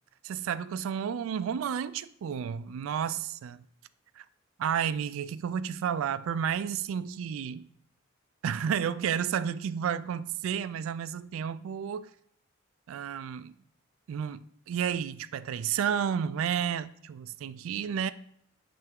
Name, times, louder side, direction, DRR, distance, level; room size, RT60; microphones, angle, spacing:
voice 1, 0.2-3.6 4.2-4.3 4.6-7.7 8.4-12.1 12.9-13.5 14.1-14.4 14.7-18.1, right 8 dB, 85° right, 0.3 m, -31 dB
8.6 x 3.4 x 3.6 m
head